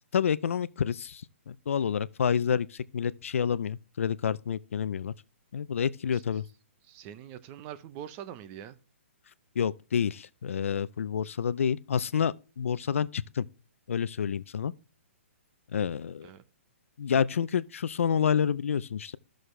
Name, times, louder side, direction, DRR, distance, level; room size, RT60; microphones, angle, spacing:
voice 1, 0.1-5.1 5.5-6.4 9.6-13.4 13.9-14.7 15.7-16.3 17.0-19.2, left 7 dB, 75° left, 0.5 m, -28 dB
voice 2, 6.8-8.8 16.2-16.4, right 10 dB, 25° right, 0.7 m, -43 dB
14.5 x 6.4 x 3.2 m
hypercardioid pair, 155°, 7 cm